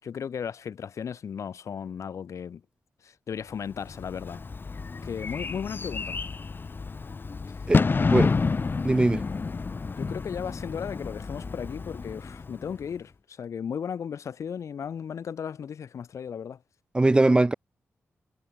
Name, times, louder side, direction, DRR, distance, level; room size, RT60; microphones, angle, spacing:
voice 1, 0.0-2.6 3.0-4.4 5.0-6.2 7.9-8.3 10.0-16.6, left 7 dB, 75° left, 4.3 m, -35 dB
Bird / Fireworks, 3.7-12.9, left 4 dB, 40° left, 1.2 m, -29 dB
voice 2, 8.8-9.2 16.9-17.5, right 2 dB, 20° right, 0.3 m, -20 dB
cardioid pair, 70°, 5 cm